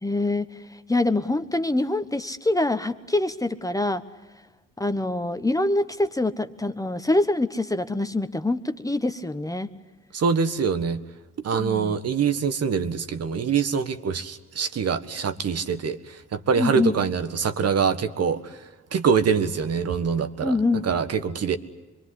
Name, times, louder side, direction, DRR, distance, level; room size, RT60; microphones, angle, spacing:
voice 1, 0.0-4.0 4.8-9.7 11.6-12.0 16.5-17.0 20.4-20.9, left 2 dB, 10° left, 9 dB, 1.2 m, -25 dB
voice 2, 10.1-11.0 11.4-18.4 18.9-20.5 20.8-21.6, right 6 dB, 55° right, 9 dB, 1.7 m, -24 dB
25.5 x 22.5 x 9.8 m, 1.1 s
cardioid pair, 90°, 30 cm